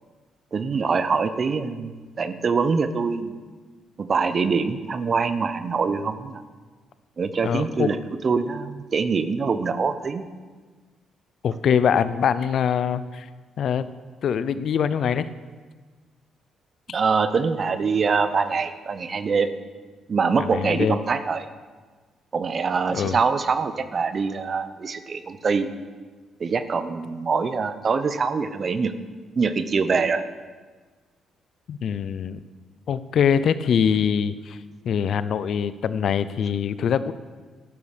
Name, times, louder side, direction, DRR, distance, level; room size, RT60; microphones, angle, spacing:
voice 1, 0.5-3.3 4.0-6.4 7.2-8.0 8.2-10.3 16.9-19.5 20.1-21.5 22.3-25.7 26.4-28.9 29.4-30.2, right 5 dB, 45° right, 11 dB, 0.8 m, -24 dB
voice 2, 7.4-7.9 11.4-13.3 13.6-13.9 14.2-15.3 20.5-21.0 22.9-23.2 31.7-32.4 32.9-34.6 34.8-37.1, left 7 dB, 65° left, 14 dB, 0.6 m, -23 dB
12.0 x 8.7 x 6.7 m, 1.4 s
cardioid pair, 90°, 0 cm